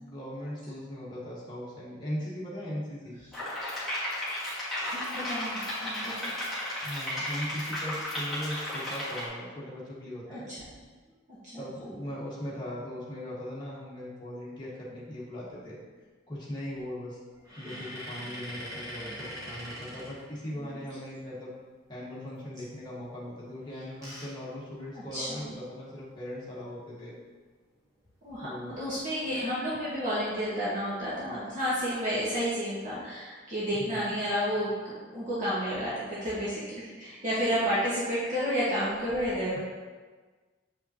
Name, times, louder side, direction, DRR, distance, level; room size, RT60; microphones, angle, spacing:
voice 1, 0.0-3.2 6.8-10.5 11.6-15.8 16.3-17.2 17.6-21.5 21.9-27.2 28.4-28.8 33.7-34.1 39.5-39.6, equal, 25° left, -7 dB, 1.5 m, -39 dB
sound 1, 3.3-9.2, left 1 dB, ahead, 1.9 m, -34 dB
voice 2, 4.9-6.3 10.3-10.6 11.5-11.9 20.6-20.8 24.9-25.5 28.2-39.6, equal, 40° right, -10 dB, 1.5 m, -31 dB
sound 2, 17.4-20.8 23.5-25.5 26.0-26.1 26.3-26.5 28.0-28.4 29.0-29.5, equal, 15° right, 1.4 m, -43 dB
7.2 x 5.4 x 2.9 m, 1.4 s
head